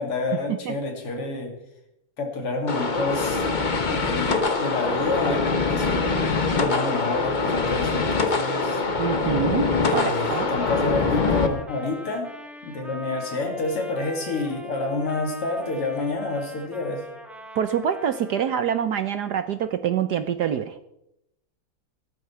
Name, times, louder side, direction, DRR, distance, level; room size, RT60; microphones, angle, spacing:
voice 1, 0.0-1.5 2.2-3.4 3.9-6.1 6.5-8.8 9.8-12.3 12.6-17.0, left 3 dB, 85° left, 3 dB, 3.5 m, -29 dB
sound 1, 2.7-11.5, left 4 dB, 35° left, 0.8 m, -24 dB
voice 2, 9.0-10.5 17.5-20.7, right 8 dB, 65° right, 11 dB, 1.0 m, -26 dB
Trumpet, 10.0-18.5, equal, ahead, 1.8 m, -42 dB
17.0 x 13.0 x 4.5 m, 0.84 s
omnidirectional pair, 2.4 m